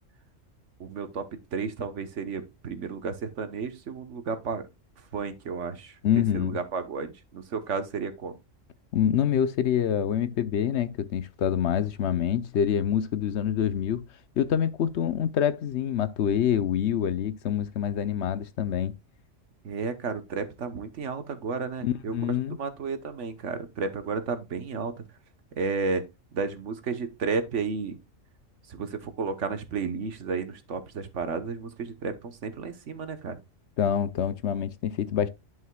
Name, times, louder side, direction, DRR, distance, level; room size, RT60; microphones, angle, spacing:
voice 1, 0.8-1.2 1.5-4.6 5.1-5.9 6.3-8.4 19.6-24.9 25.5-26.0 26.3-28.0 28.7-33.4, right 5 dB, 70° right, 1.4 m, -32 dB
voice 2, 6.0-6.6 8.9-14.1 14.4-19.0 21.8-22.6 33.8-35.3, left 9 dB, 65° left, 0.9 m, -26 dB
11.0 x 5.7 x 2.3 m
omnidirectional pair, 1.3 m